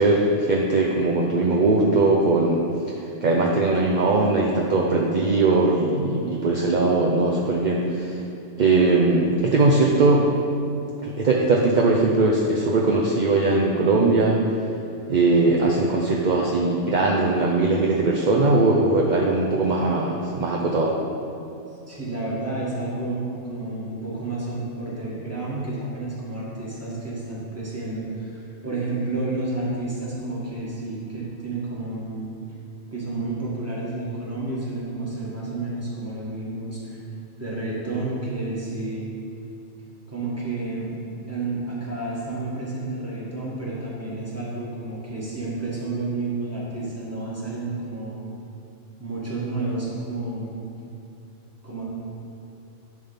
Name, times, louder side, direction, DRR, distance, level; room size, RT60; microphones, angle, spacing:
voice 1, 0.0-2.6 2.9-8.2 8.6-10.3 11.0-14.4 15.1-21.0, right 3 dB, 50° right, -2 dB, 0.6 m, -20 dB
voice 2, 21.9-32.3 32.9-37.0 37.4-39.1 40.1-40.9 41.3-48.2 49.0-50.5 51.6-51.8, right 2 dB, 10° right, -7 dB, 1.8 m, -30 dB
11.0 x 3.6 x 5.6 m, 2.6 s
omnidirectional pair, 1.3 m